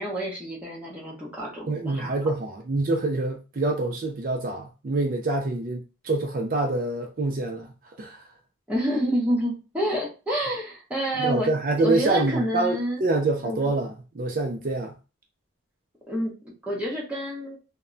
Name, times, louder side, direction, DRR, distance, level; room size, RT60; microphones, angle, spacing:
voice 1, 0.0-2.2 8.7-11.5 11.8-13.0 13.4-13.6 16.1-16.3 16.6-17.6, equal, 5° right, 0.8 m, -28 dB
voice 2, 1.7-7.7 8.0-8.2 11.2-14.9, right 2 dB, 40° right, 0.4 m, -26 dB
2.1 x 2.1 x 3.7 m
head